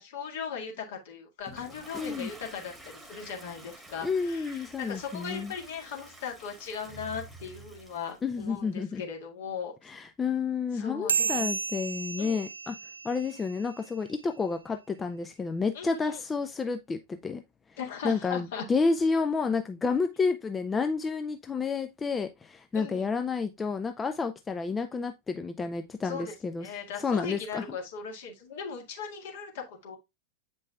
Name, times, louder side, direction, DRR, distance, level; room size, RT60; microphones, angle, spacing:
voice 1, 0.0-9.7 10.7-11.4 12.2-12.4 15.7-16.2 17.8-18.6 22.7-23.0 26.0-26.3 26.6-30.0, left 6 dB, 55° left, 2.0 m, -38 dB
Toilet flush, 1.4-8.2, right 2 dB, 10° right, 1.3 m, -49 dB
voice 2, 1.9-2.3 4.0-5.5 8.2-9.0 9.8-12.8 13.0-17.4 17.7-17.8 18.0-26.7 27.0-27.8, left 4 dB, 15° left, 0.5 m, -30 dB
sound 1, 11.1-13.9, right 5 dB, 75° right, 0.3 m, -32 dB
8.4 x 5.3 x 2.3 m
figure-of-eight pair, 90°, 0 cm